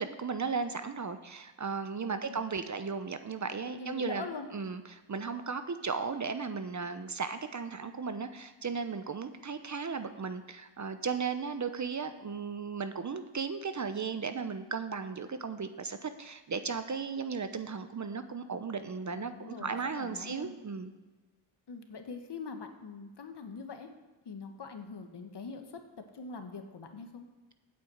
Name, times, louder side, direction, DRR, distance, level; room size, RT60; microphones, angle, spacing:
voice 1, 0.0-20.9, right 5 dB, 35° right, 10 dB, 0.8 m, -36 dB
voice 2, 3.7-4.5 19.1-20.5 21.7-23.9 24.2-25.8 26.1-27.3, left 4 dB, 55° left, 6 dB, 1.5 m, -43 dB
8.8 x 6.8 x 7.9 m, 1.2 s
cardioid pair, 80°, 48 cm